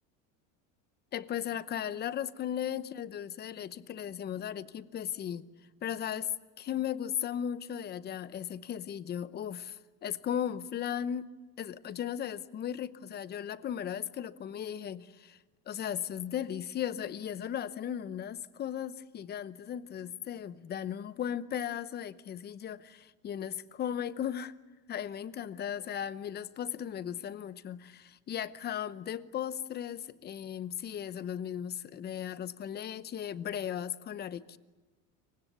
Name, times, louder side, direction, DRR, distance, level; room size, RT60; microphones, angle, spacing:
voice 1, 1.1-5.5 5.8-6.3 6.6-11.3 11.6-15.4 15.7-24.5 24.9-34.6, left 9 dB, 25° left, 16 dB, 0.9 m, -36 dB
27.0 x 24.0 x 8.2 m, 1.3 s
cardioid pair, 160°, 40 cm